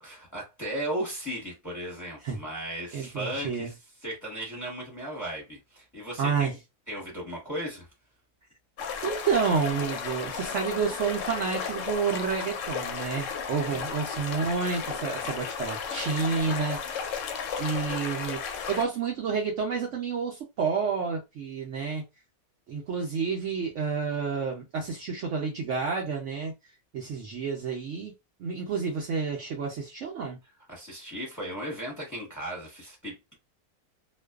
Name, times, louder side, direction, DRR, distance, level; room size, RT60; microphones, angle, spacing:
voice 1, 0.0-3.7 4.0-6.5 6.9-7.9 13.7-13.8 30.7-33.3, right 1 dB, 15° left, 0.9 m, -36 dB
voice 2, 2.9-3.7 6.2-6.5 9.0-17.2 17.6-18.4 18.7-22.0 22.7-26.5 26.9-28.1 28.4-30.4, right 5 dB, 65° right, 0.8 m, -29 dB
sound 1, 8.8-18.8, left 6 dB, 65° left, 0.8 m, -34 dB
2.5 x 2.2 x 2.3 m
omnidirectional pair, 1.6 m